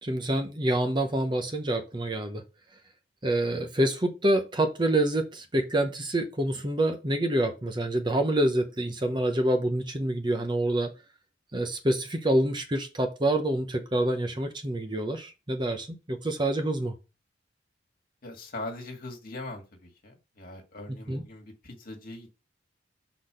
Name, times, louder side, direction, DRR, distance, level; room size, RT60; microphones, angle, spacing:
voice 1, 0.0-2.4 3.2-10.9 11.5-17.0 21.1-21.2, right 1 dB, 25° right, 0.9 m, -27 dB
voice 2, 18.2-22.3, left 2 dB, 50° left, 1.8 m, -41 dB
6.2 x 4.0 x 5.0 m
head